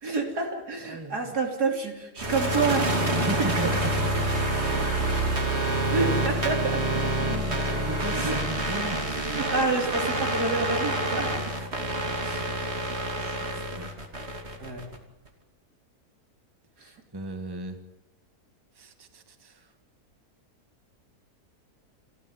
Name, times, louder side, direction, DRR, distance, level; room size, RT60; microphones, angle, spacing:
voice 1, 0.0-3.2 5.9-6.8 8.1-8.4 9.1-11.6 12.2-12.5 13.5-13.7 14.6-14.9 16.8-16.9, right 4 dB, 75° right, 2 dB, 4.0 m, -29 dB
voice 2, 0.8-1.3 3.1-4.9 7.2-9.1 13.2-13.9 17.1-17.8 18.7-19.7, right 2 dB, 15° right, 7 dB, 1.7 m, -37 dB
sound 1, 2.2-15.0, right 1 dB, 40° right, 2.9 m, -27 dB
29.5 x 13.0 x 9.6 m, 0.94 s
omnidirectional pair, 1.7 m